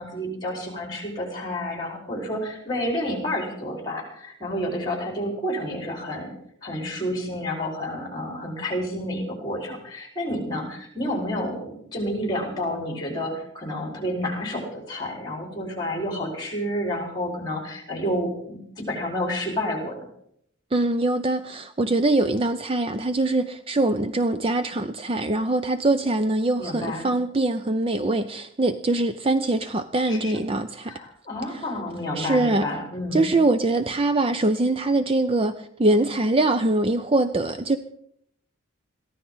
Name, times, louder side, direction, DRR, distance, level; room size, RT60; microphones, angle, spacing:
voice 1, 0.0-6.3 6.6-20.0 26.6-27.1 30.1-30.4 30.9-33.3, left 1 dB, 20° left, 4.5 m, -30 dB
voice 2, 20.7-31.0 31.5-31.7 32.2-32.7 33.1-37.8, right 2 dB, 25° right, 0.5 m, -23 dB
22.0 x 15.0 x 3.9 m
head